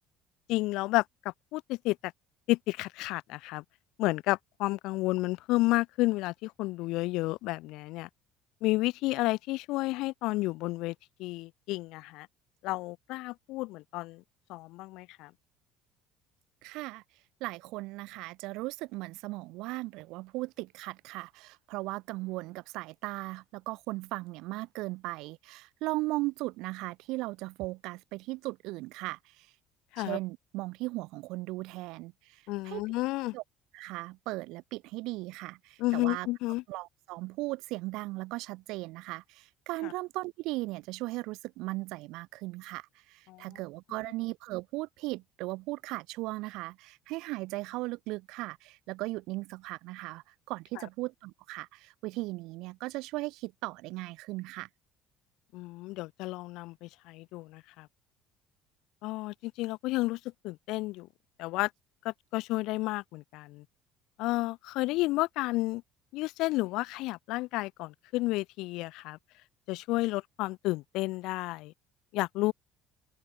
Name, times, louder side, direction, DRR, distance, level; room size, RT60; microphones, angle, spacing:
voice 1, 0.5-2.1 2.5-3.6 4.0-8.1 8.6-10.9 11.2-12.3 12.6-14.2 14.5-15.3 29.9-30.2 32.5-33.4 35.8-36.6 39.8-39.9 43.3-43.5 55.5-57.9 59.0-61.1 61.4-61.7 62.0-63.6 64.2-65.8 66.1-69.2 69.7-71.7 72.1-72.5, left 20 dB, 60° left, 4.2 m, -31 dB
voice 2, 16.6-17.0 17.4-29.5 30.0-32.8 33.3-33.4 33.7-36.3 36.7-54.7, right 21 dB, 65° right, 2.6 m, -37 dB
cardioid pair, 180°, 0 cm